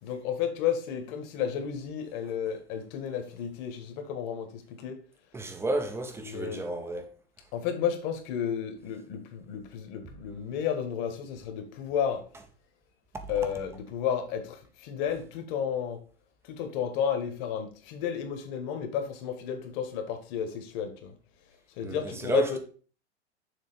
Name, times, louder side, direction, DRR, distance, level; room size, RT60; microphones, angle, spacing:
voice 1, 0.0-5.0 6.2-6.6 7.5-12.2 13.3-16.0 16.5-21.1 21.8-22.6, left 8 dB, 45° left, 1.5 m, -32 dB
voice 2, 5.3-7.1 21.8-22.6, right 2 dB, 5° right, 0.6 m, -32 dB
6.7 x 3.6 x 5.0 m
hypercardioid pair, 140°, 34 cm